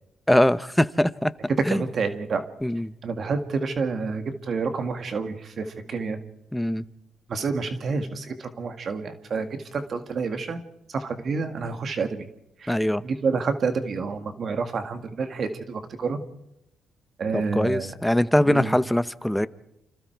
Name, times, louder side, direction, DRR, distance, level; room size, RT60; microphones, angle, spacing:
voice 1, 0.3-1.8 2.6-2.9 6.5-6.8 12.7-13.0 17.3-19.5, left 1 dB, 5° left, 15 dB, 0.9 m, -22 dB
voice 2, 1.7-2.4 3.0-6.2 7.3-10.6 10.9-12.3 12.6-12.8 13.0-16.2 17.2-17.9 18.5-18.7, right 4 dB, 50° right, 7 dB, 2.1 m, -29 dB
29.0 x 26.5 x 4.7 m, 0.84 s
cardioid pair, 90°, 0 cm